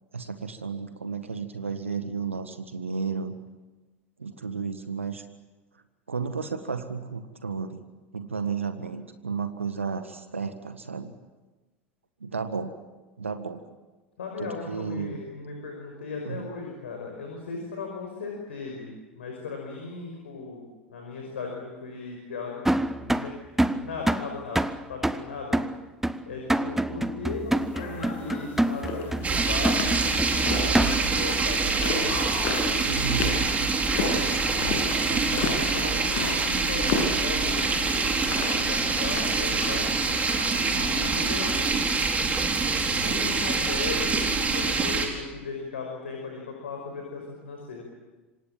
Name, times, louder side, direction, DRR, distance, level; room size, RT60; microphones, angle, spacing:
voice 1, 0.1-3.3 4.2-5.2 6.1-7.8 8.1-11.2 12.2-12.7 13.2-13.6 14.4-15.2 16.3-16.5 27.1-27.3 32.9-33.5 34.6-35.5, right 5 dB, 80° right, 9 dB, 1.6 m, -33 dB
voice 2, 14.2-25.6 26.3-32.8 33.9-34.3 35.2-37.6 37.8-39.9 40.7-42.0 42.8-47.9, left 4 dB, 70° left, 1 dB, 5.7 m, -37 dB
sound 1, 22.7-31.3, right 1 dB, 5° right, 1.0 m, -27 dB
sound 2, 27.7-41.8, left 4 dB, 50° left, 8.0 m, -34 dB
sound 3, 29.2-45.1, right 4 dB, 20° right, 4.8 m, -25 dB
27.0 x 26.0 x 7.6 m, 1.2 s
figure-of-eight pair, 80°, 7 cm